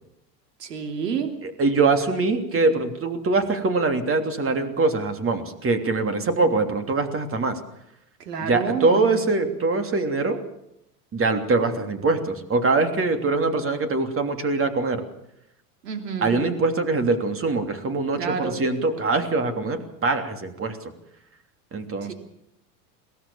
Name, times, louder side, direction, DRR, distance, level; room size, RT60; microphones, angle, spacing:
voice 1, 0.6-1.3 8.2-9.2 15.8-16.4 18.2-18.6 22.0-22.1, right 6 dB, 90° right, 5 dB, 3.1 m, -29 dB
voice 2, 1.4-7.6 8.4-10.4 11.1-15.0 16.2-20.8 21.7-22.1, right 3 dB, 25° right, 7 dB, 3.2 m, -23 dB
22.5 x 18.0 x 7.1 m, 0.81 s
hypercardioid pair, 95°, 47 cm